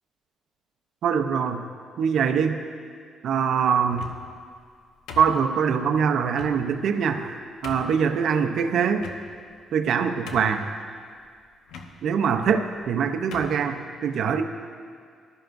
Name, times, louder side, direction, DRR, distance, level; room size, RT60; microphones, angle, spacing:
voice 1, 1.0-1.6 2.0-2.6 3.2-4.1 5.2-7.3 7.6-9.1 9.7-10.6 12.0-14.4, right 7 dB, 70° right, 6 dB, 0.8 m, -23 dB
sound 1, 3.8-4.4 5.1-5.8 6.3-6.6 7.2-7.3 7.6-8.0 9.0-9.5 9.9-10.0 10.3-10.7 11.7-11.9 12.8-12.9 13.3-13.6, left 4 dB, 85° left, 1.1 m, -40 dB
19.5 x 12.5 x 2.6 m, 2.1 s
cardioid pair, 90°, 0 cm